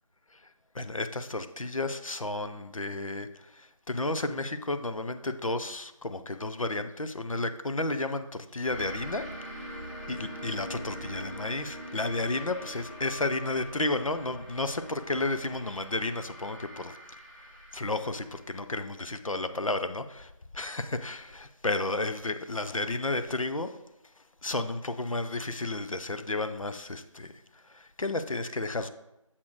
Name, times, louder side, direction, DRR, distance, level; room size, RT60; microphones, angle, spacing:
voice 1, 0.7-9.2 10.1-17.2 17.7-23.8 24.4-27.4 27.7-28.9, left 2 dB, 70° left, 9 dB, 0.7 m, -32 dB
sound 1, 8.6-19.8, equal, 5° left, 1.9 m, -43 dB
7.3 x 4.3 x 4.7 m, 0.90 s
figure-of-eight pair, 180°, 18 cm